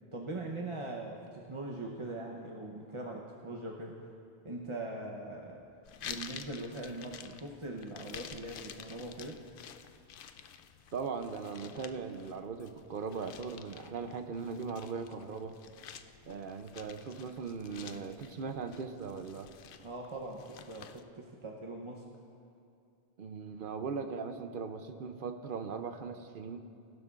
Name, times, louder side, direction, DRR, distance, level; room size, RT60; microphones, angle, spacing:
voice 1, 0.1-4.0 4.4-5.7 6.0-9.4 19.8-22.1, right 2 dB, 30° right, -1 dB, 0.8 m, -41 dB
sound 1, 5.8-21.0, left 8 dB, 65° left, 0.7 m, -50 dB
voice 2, 10.9-15.6 16.3-19.5 23.2-26.6, right 5 dB, 60° right, 8 dB, 0.7 m, -39 dB
19.0 x 12.0 x 2.4 m, 2.5 s
omnidirectional pair, 1.1 m